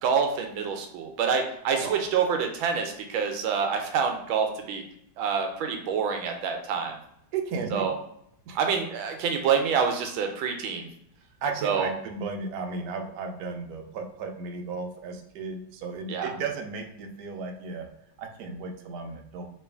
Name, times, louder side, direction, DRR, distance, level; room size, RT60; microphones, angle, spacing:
voice 1, 0.0-4.8 5.2-6.9 7.7-7.9 8.5-10.9 11.6-11.9 16.1-16.3, right 6 dB, 85° right, 4 dB, 1.4 m, -27 dB
voice 2, 7.3-7.9 8.5-8.6 11.4-17.9 18.2-19.5, right 4 dB, 70° right, 3 dB, 1.0 m, -34 dB
3.1 x 3.0 x 3.4 m, 0.73 s
omnidirectional pair, 2.2 m